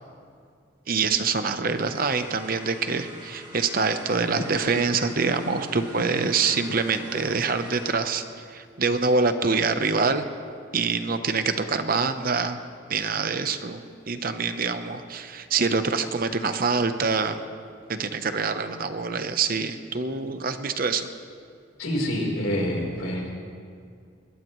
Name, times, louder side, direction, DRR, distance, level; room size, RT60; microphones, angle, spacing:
voice 1, 0.9-8.2 8.5-10.2 10.7-12.6 12.9-17.4 17.9-21.1, right 4 dB, 45° right, 9 dB, 0.8 m, -25 dB
sound 1, 1.7-7.9, right 2 dB, 25° right, 2.4 m, -44 dB
sound 2, 4.3-7.3, left 3 dB, 65° left, 0.6 m, -41 dB
voice 2, 21.8-23.3, equal, 80° left, -1 dB, 3.9 m, -27 dB
21.0 x 21.0 x 3.1 m, 2.3 s
head